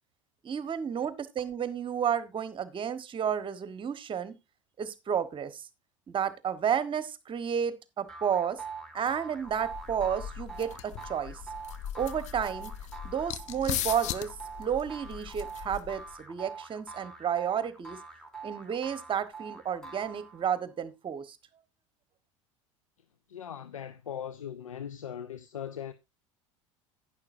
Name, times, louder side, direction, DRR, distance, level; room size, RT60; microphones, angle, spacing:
voice 1, 0.4-4.3 4.8-5.6 6.1-8.6 8.9-11.4 11.9-12.7 13.0-18.0 18.4-21.4, right 8 dB, 30° right, 1.3 m, -31 dB
sound 1, 8.1-20.6, right 4 dB, 5° left, 3.0 m, -45 dB
sound 2, 9.5-16.1, left 11 dB, 45° left, 0.8 m, -39 dB
voice 2, 23.3-25.9, left 9 dB, 85° left, 0.6 m, -39 dB
11.0 x 10.0 x 2.7 m
hypercardioid pair, 75°, 17 cm